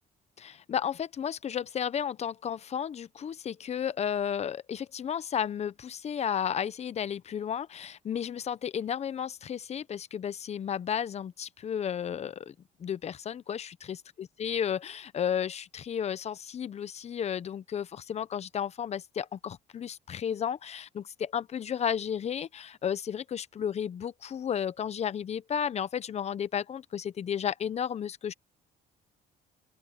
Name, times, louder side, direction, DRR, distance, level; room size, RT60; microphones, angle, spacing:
voice 1, 0.4-12.5 12.8-13.8 14.4-28.3, left 8 dB, 40° left, 0.9 m, -33 dB
open air
cardioid pair, 110°, 17 cm